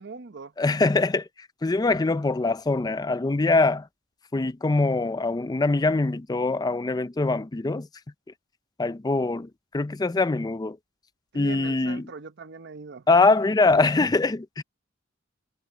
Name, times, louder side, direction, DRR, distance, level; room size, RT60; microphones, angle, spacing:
voice 1, 0.0-0.5 11.3-13.0, right 4 dB, 60° right, 0.8 m, -41 dB
voice 2, 0.6-3.9 4.3-7.9 8.8-10.8 11.3-12.1 13.1-14.6, left 3 dB, 20° left, 0.4 m, -23 dB
head